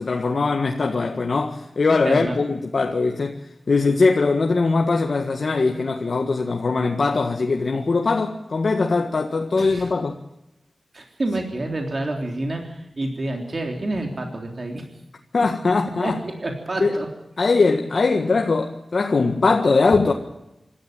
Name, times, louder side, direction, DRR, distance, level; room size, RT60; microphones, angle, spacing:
voice 1, 0.0-3.4 3.7-10.1 15.3-16.2 16.8-17.0 17.4-20.1, left 3 dB, 65° left, 1.7 m, -21 dB
voice 2, 2.0-2.4 9.6-9.9 10.9-14.9 15.4-15.5 16.0-17.1, right 2 dB, 45° right, 3.5 m, -28 dB
26.0 x 13.5 x 9.1 m
wide cardioid pair, 80°, 0 cm